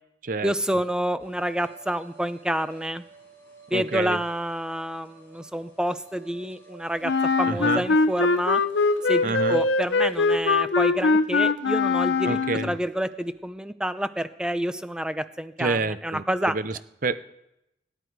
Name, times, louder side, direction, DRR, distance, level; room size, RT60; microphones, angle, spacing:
voice 1, 0.4-3.0 3.7-7.1 7.4-8.6 9.1-16.5, equal, 5° right, 12 dB, 0.6 m, -28 dB
sound 1, 1.2-10.4, right 3 dB, 15° left, 6.5 m, -52 dB
voice 2, 3.7-4.2 7.5-7.8 9.2-9.6 12.3-12.7 15.6-17.2, right 3 dB, 45° right, 14 dB, 0.6 m, -28 dB
Wind instrument woodwind instrument, 7.0-12.8, left 3 dB, 75° left, 0.7 m, -22 dB
25.0 x 11.0 x 4.7 m, 0.86 s
head